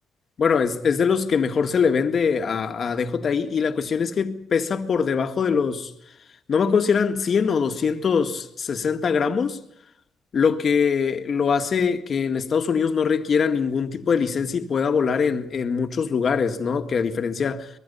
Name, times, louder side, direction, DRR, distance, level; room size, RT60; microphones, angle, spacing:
voice 1, 0.4-5.9 6.5-9.6 10.3-17.7, left 6 dB, 50° left, 1.8 m, -22 dB
24.0 x 21.5 x 5.6 m
cardioid pair, 90°, 0 cm